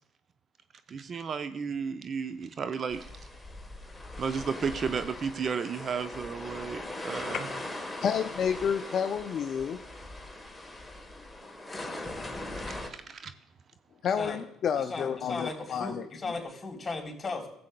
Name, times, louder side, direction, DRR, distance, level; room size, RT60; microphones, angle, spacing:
voice 1, 0.9-3.1 4.2-7.5 12.5-13.3, right 6 dB, 45° right, 11 dB, 0.5 m, -33 dB
sound 1, 2.9-12.9, left 1 dB, 10° left, 1.2 m, -40 dB
voice 2, 8.0-9.8 14.0-16.0, left 7 dB, 55° left, 8 dB, 0.4 m, -30 dB
voice 3, 11.7-12.2 14.2-14.4 14.8-17.5, left 3 dB, 25° left, 1 dB, 3.3 m, -37 dB
16.5 x 7.6 x 2.2 m, 0.75 s
hypercardioid pair, 65°, 0 cm